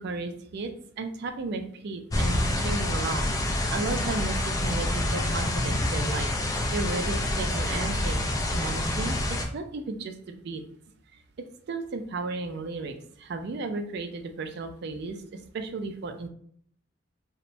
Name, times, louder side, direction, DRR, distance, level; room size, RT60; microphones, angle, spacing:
voice 1, 0.0-3.3 3.7-6.3 6.7-10.6 11.7-15.2 15.5-16.3, right 3 dB, 60° right, 6 dB, 0.4 m, -34 dB
sound 1, 2.1-9.4, left 1 dB, 20° left, 0.3 m, -27 dB
3.0 x 2.1 x 2.5 m, 0.63 s
head